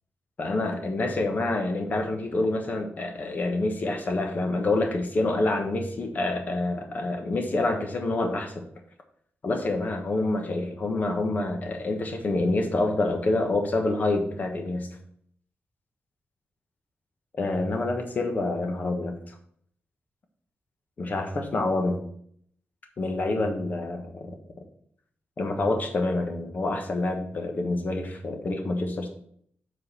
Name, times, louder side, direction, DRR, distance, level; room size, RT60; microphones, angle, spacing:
voice 1, 0.4-8.6 9.4-14.9 17.4-19.3 21.0-22.0 23.0-24.3 25.4-29.1, left 2 dB, 40° left, 4 dB, 1.2 m, -27 dB
7.5 x 4.0 x 6.5 m, 0.65 s
wide cardioid pair, 155°, 4 cm